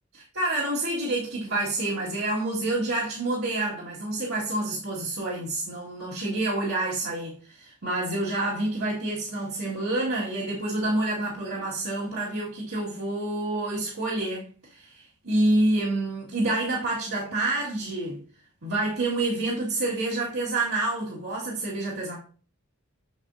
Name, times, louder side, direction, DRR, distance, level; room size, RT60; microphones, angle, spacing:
voice 1, 0.1-18.2 18.6-22.2, right 2 dB, 70° right, 1.9 m, -28 dB
7.2 x 6.8 x 2.6 m
head